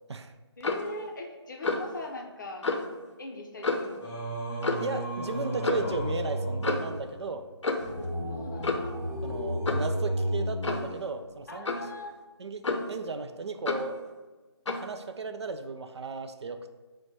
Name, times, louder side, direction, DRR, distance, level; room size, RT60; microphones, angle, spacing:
Clock, 0.6-0.9 1.6-1.9 2.6-2.9 3.6-4.0 4.6-4.9 5.6-5.9 6.6-7.0 7.6-8.0 8.6-9.0 9.7-9.9 10.6-10.9 11.7-11.9 12.6-13.0 13.7-13.9 14.7-14.9, left 3 dB, 85° left, 0.6 m, -30 dB
voice 1, 0.6-2.7 3.2-4.1 8.3-9.1 11.5-12.1, left 2 dB, 45° left, 2 dB, 0.5 m, -40 dB
Singing, 4.0-11.4, equal, 20° left, 0.9 m, -33 dB
voice 2, 4.8-7.5 9.2-11.9 12.4-14.0 14.7-16.7, right 4 dB, 70° right, 8 dB, 0.4 m, -35 dB
4.1 x 2.1 x 4.6 m, 1.2 s
figure-of-eight pair, 160°, 15 cm